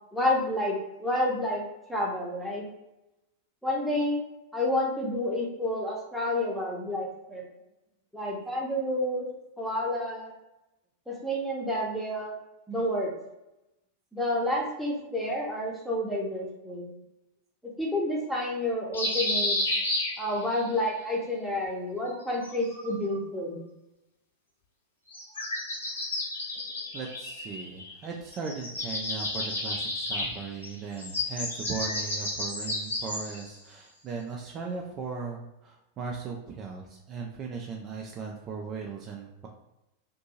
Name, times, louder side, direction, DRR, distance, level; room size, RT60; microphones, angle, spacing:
voice 1, 0.1-1.6 1.9-2.7 3.6-4.2 4.5-7.4 8.1-9.3 9.6-10.3 11.1-12.3 12.7-13.1 14.1-16.8 17.8-19.6 20.2-23.6, left 1 dB, ahead, -3 dB, 0.8 m, -29 dB
sound 1, 18.9-20.7 22.1-23.1 25.1-28.1 28.3-33.5, left 1 dB, 70° left, 1.0 m, -32 dB
voice 2, 26.9-39.5, right 5 dB, 30° right, 0 dB, 0.3 m, -38 dB
2.6 x 2.6 x 2.7 m, 0.94 s
figure-of-eight pair, 90°, 0 cm